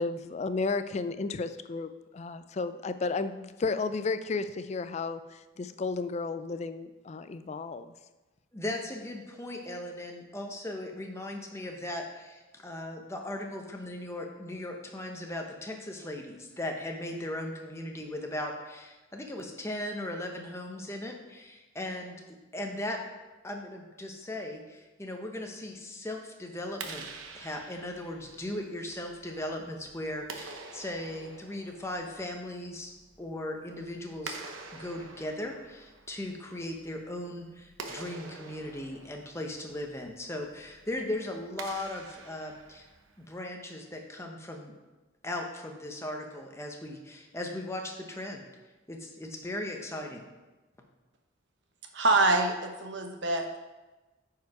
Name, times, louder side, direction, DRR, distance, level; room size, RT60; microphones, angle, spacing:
voice 1, 0.0-7.9, left 4 dB, 35° left, 11 dB, 0.3 m, -33 dB
voice 2, 8.5-23.0 23.4-27.0 27.3-32.9 33.2-34.4 34.7-42.9 43.2-44.7 45.2-48.4 48.9-50.2, left 1 dB, 15° left, 2 dB, 0.8 m, -38 dB
Clapping, 26.6-43.4, right 4 dB, 90° right, 0.9 m, -47 dB
voice 3, 51.9-53.6, right 2 dB, 60° right, 4 dB, 1.0 m, -25 dB
9.2 x 4.7 x 4.8 m, 1.1 s
head